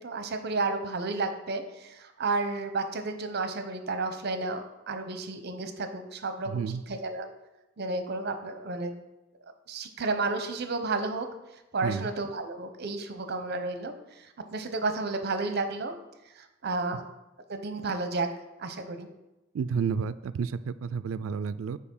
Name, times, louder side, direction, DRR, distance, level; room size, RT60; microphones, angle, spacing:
voice 1, 0.0-7.3 7.8-8.9 9.7-11.3 11.7-14.3 14.5-16.0 16.4-17.0 17.5-18.3 18.6-19.1, right 3 dB, 55° right, 8 dB, 0.8 m, -32 dB
voice 2, 6.5-6.8 11.8-12.1 19.5-21.8, right 6 dB, 85° right, 15 dB, 0.3 m, -31 dB
6.8 x 4.8 x 5.4 m, 0.98 s
head